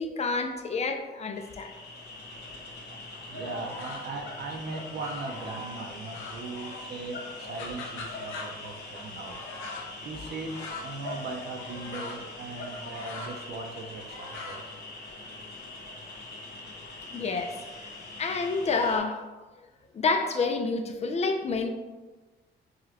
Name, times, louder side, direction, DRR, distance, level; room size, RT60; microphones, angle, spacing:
voice 1, 0.0-1.7 17.1-17.6 18.2-19.2 19.9-21.7, left 4 dB, 35° left, 6 dB, 0.5 m, -28 dB
sound 1, 1.3-19.0, left 2 dB, 55° left, 1.3 m, -42 dB
sound 2, 3.1-4.2 4.6-7.0 7.2-15.0, left 2 dB, 90° left, 0.6 m, -42 dB
voice 2, 3.3-9.4 9.9-14.6, right 3 dB, 55° right, 3 dB, 0.6 m, -39 dB
4.9 x 2.3 x 2.9 m, 1.2 s
cardioid pair, 90°, 20 cm